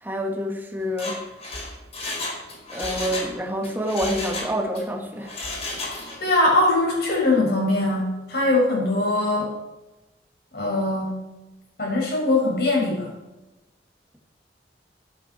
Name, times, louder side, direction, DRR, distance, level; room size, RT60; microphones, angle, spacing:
voice 1, 0.0-1.2 2.7-5.4, equal, 10° right, 0 dB, 2.3 m, -27 dB
Mechanisms, 0.8-3.3 3.6-4.8 5.2-6.3 6.6-6.7, left 2 dB, 35° left, 4.2 m, -33 dB
voice 2, 6.2-9.5 10.5-11.2 11.8-13.1, left 2 dB, 65° left, -2 dB, 6.1 m, -21 dB
16.0 x 12.5 x 4.5 m, 1.0 s
head